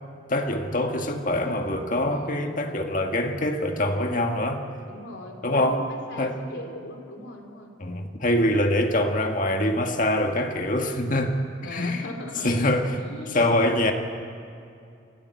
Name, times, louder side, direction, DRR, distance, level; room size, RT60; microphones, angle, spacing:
voice 1, 0.3-4.6 5.4-5.8 6.2-6.4 7.8-12.1 12.4-13.0 13.3-13.9, left 1 dB, 45° left, 4 dB, 1.7 m, -24 dB
voice 2, 2.0-2.5 4.8-7.7 8.7-8.8 11.6-12.6 13.0-13.6, left 1 dB, 75° left, 3 dB, 3.0 m, -39 dB
28.5 x 12.0 x 8.4 m, 2.5 s
head